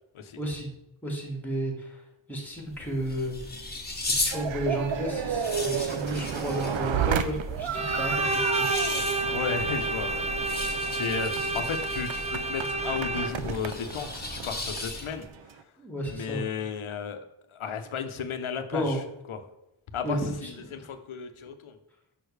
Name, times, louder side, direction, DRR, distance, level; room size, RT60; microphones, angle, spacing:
voice 1, 0.4-0.7 1.0-2.0 2.3-3.4 4.0-8.7 15.8-16.5 18.7-19.0 20.0-20.8, right 1 dB, 5° left, 0 dB, 1.9 m, -32 dB
sound 1, 2.6-15.3, left 2 dB, 20° left, 1.2 m, -37 dB
sound 2, 4.3-15.6, right 8 dB, 70° right, 0.6 m, -33 dB
Bowed string instrument, 7.7-13.6, right 2 dB, 15° right, 0.5 m, -29 dB
voice 2, 9.3-10.3 10.7-15.6 16.1-17.2 17.5-19.0 19.3-19.4 19.9-21.8, left 6 dB, 80° left, 8 dB, 0.8 m, -34 dB
6.4 x 5.6 x 3.3 m, 0.88 s
wide cardioid pair, 70°, 49 cm